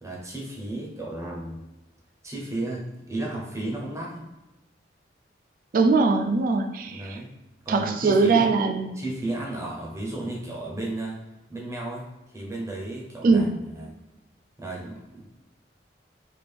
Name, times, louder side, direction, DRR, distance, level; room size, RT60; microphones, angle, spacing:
voice 1, 0.0-1.6 2.2-4.2 6.8-7.3 7.6-8.5 8.9-11.2 11.5-12.1 12.3-13.9 14.6-15.3, right 2 dB, 15° right, -2 dB, 0.7 m, -33 dB
voice 2, 5.7-7.2 7.7-9.0 13.2-13.5, right 3 dB, 50° right, 6 dB, 0.3 m, -21 dB
3.4 x 2.4 x 3.4 m, 1.0 s
head